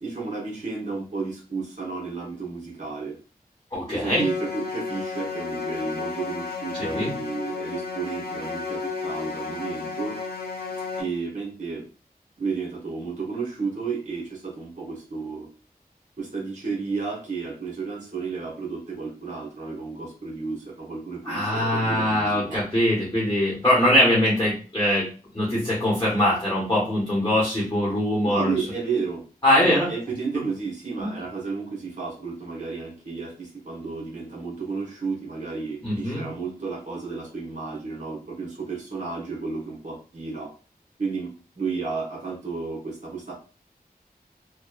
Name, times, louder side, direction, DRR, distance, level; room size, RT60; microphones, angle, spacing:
voice 1, 0.0-3.2 3.9-10.2 11.0-11.8 12.4-15.5 16.2-22.6 28.2-29.2 29.6-40.5 41.0-41.3 41.6-43.4, right 4 dB, 50° right, -3 dB, 1.1 m, -32 dB
voice 2, 3.7-4.2 6.8-7.1 21.2-25.1 25.3-28.5 29.4-29.9 31.0-31.1 35.8-36.2, left 1 dB, 20° left, -6 dB, 1.1 m, -22 dB
sound 1, 4.0-11.0, left 4 dB, 75° left, 0.7 m, -32 dB
2.9 x 2.2 x 2.3 m, 0.35 s
wide cardioid pair, 45°, 16 cm